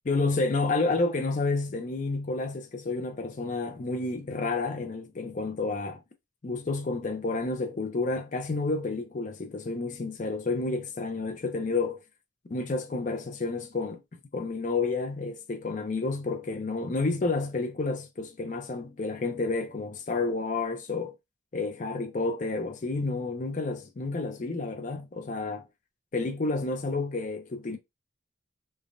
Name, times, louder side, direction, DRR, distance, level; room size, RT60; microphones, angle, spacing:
voice 1, 0.1-6.0 6.4-12.0 12.5-14.0 14.3-21.1 21.5-25.6 26.1-27.8, left 3 dB, 40° left, 0.4 m, -30 dB
3.2 x 2.1 x 2.5 m
head